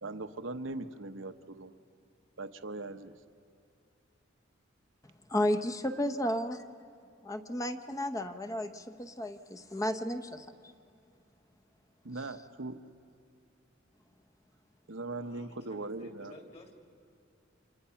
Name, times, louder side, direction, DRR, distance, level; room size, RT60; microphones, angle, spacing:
voice 1, 0.0-1.7 2.4-3.2 12.0-12.8 14.9-16.3, right 2 dB, 75° right, 9 dB, 1.0 m, -40 dB
voice 2, 5.3-6.6 7.2-10.5, left 1 dB, 15° left, 7 dB, 0.9 m, -33 dB
voice 3, 15.2-16.7, left 1 dB, 35° left, 3 dB, 3.0 m, -54 dB
29.0 x 26.5 x 5.7 m, 2.5 s
head